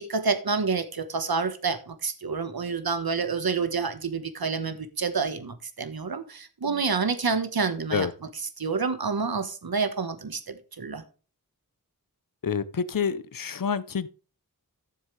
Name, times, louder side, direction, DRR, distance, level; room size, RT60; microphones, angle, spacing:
voice 1, 0.0-8.1 8.6-11.0, right 4 dB, 75° right, 1.3 m, -28 dB
voice 2, 12.4-14.1, left 6 dB, 65° left, 0.8 m, -28 dB
13.5 x 7.4 x 3.3 m
wide cardioid pair, 55°, 37 cm